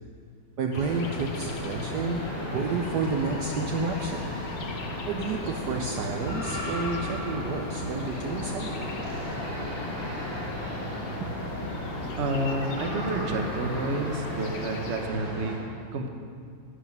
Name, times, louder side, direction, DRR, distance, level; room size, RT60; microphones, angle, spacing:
voice 1, 0.6-2.2 2.5-4.3 5.1-8.9 11.2-12.1, right 4 dB, 65° right, 3 dB, 1.1 m, -31 dB
sound 1, 0.7-15.0, left 4 dB, 75° left, 1.7 m, -38 dB
sound 2, 0.8-15.6, equal, 25° right, 2.5 m, -36 dB
voice 2, 12.2-16.1, right 2 dB, 45° right, 4 dB, 0.9 m, -30 dB
11.5 x 9.9 x 5.3 m, 2.2 s
omnidirectional pair, 2.2 m